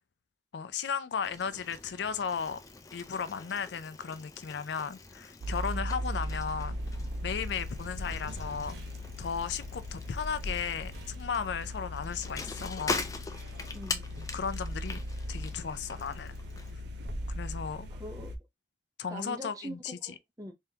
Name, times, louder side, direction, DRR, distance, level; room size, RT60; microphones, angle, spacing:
voice 1, 0.5-2.6 2.9-6.8 7.2-8.8 9.2-13.1 14.3-15.0 15.3-16.3 17.3-17.9 19.0-20.1, left 6 dB, 75° left, 0.4 m, -35 dB
Bicycle, 1.2-16.7, left 3 dB, 20° left, 0.4 m, -43 dB
sound 1, 5.4-18.4, equal, 80° right, 0.7 m, -38 dB
voice 2, 13.7-14.0 17.9-18.3 19.1-20.5, right 1 dB, 20° right, 0.7 m, -43 dB
3.6 x 3.4 x 2.8 m
head